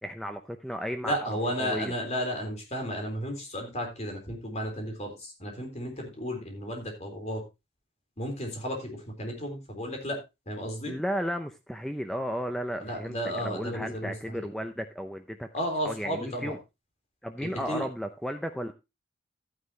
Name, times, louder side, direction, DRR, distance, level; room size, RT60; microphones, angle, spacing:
voice 1, 0.0-1.9 10.9-15.5 15.8-16.6 17.2-18.7, equal, ahead, 7 dB, 0.6 m, -34 dB
voice 2, 1.0-7.4 8.2-10.2 10.5-11.0 12.8-14.5 15.5-16.6 17.4-17.9, equal, 35° left, 3 dB, 3.7 m, -33 dB
12.5 x 9.7 x 2.8 m, 0.24 s
head